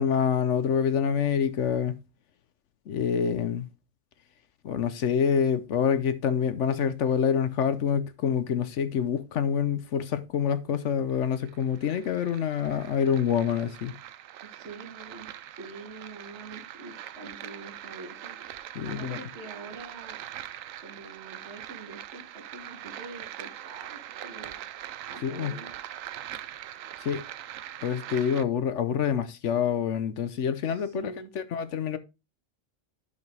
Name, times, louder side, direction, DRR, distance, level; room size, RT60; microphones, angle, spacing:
voice 1, 0.0-2.0 2.9-3.6 4.6-13.9 18.8-19.2 25.2-25.5 27.0-27.2 27.8-32.0, left 7 dB, 70° left, 1.0 m, -26 dB
sound 1, 11.1-28.4, right 11 dB, 85° right, 1.0 m, -42 dB
voice 2, 14.4-15.3 15.6-18.4 18.8-20.2 20.8-24.7 25.1-25.7 30.6-31.3, right 3 dB, 55° right, 2.5 m, -45 dB
10.5 x 5.5 x 3.3 m
omnidirectional pair, 1.4 m